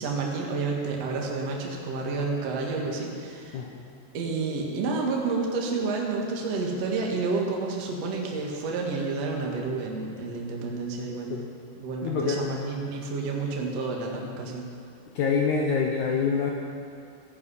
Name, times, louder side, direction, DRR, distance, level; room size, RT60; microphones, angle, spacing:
voice 1, 0.0-3.6 4.1-11.4 11.8-14.7, right 3 dB, 50° right, -1 dB, 2.3 m, -30 dB
voice 2, 3.5-3.9 11.3-11.4 12.0-12.4 15.2-16.5, left 5 dB, 75° left, 0 dB, 1.8 m, -26 dB
15.5 x 15.5 x 5.7 m, 2.4 s
omnidirectional pair, 5.0 m